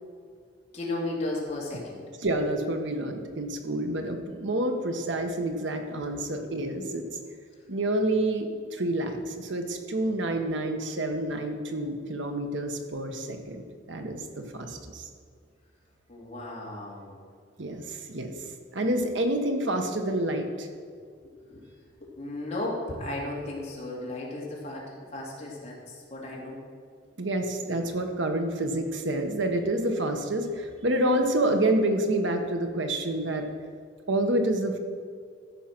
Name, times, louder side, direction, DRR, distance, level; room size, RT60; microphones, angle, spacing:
voice 1, 0.7-2.0 6.0-6.4 16.1-17.2 20.9-21.0 21.2-21.6 22.0-26.6, left 2 dB, 35° left, -3 dB, 2.6 m, -35 dB
voice 2, 2.2-7.1 7.7-13.6 13.9-15.1 17.6-18.3 18.7-20.7 27.2-33.5 34.1-34.8, right 1 dB, 85° right, 5 dB, 1.2 m, -28 dB
14.0 x 5.8 x 6.0 m, 2.1 s
head